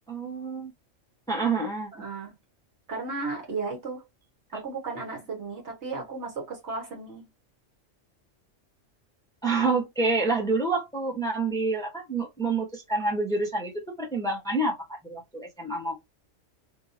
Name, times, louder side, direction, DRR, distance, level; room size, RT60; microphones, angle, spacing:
voice 1, 0.1-0.7 1.3-1.9 9.4-13.7 14.0-16.0, right 3 dB, 5° left, 1.0 m, -27 dB
voice 2, 1.9-2.3 2.9-4.1 4.5-7.3, right 4 dB, 60° right, 1.7 m, -34 dB
3.5 x 2.8 x 2.7 m
omnidirectional pair, 1.3 m